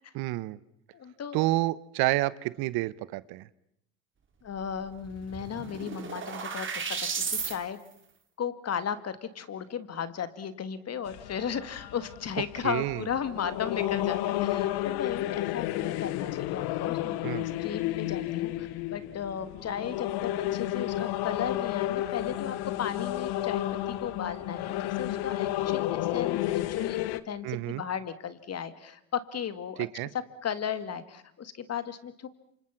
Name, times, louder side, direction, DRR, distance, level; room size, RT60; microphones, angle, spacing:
voice 1, 0.1-0.6 1.3-3.5 12.6-13.0 17.2-17.5 27.4-27.8 29.8-30.1, right 18 dB, 60° right, 19 dB, 1.0 m, -29 dB
voice 2, 0.9-1.4 4.4-7.8 8.4-17.2 17.6-29.9 30.4-32.3, left 8 dB, 35° left, 12 dB, 2.2 m, -35 dB
sound 1, 4.7-4.8 5.0-7.5, right 6 dB, 30° right, 3.7 m, -34 dB
sound 2, 11.1-27.2, left 14 dB, 65° left, 1.3 m, -31 dB
28.0 x 26.0 x 5.9 m, 0.75 s
supercardioid pair, 90°, 42 cm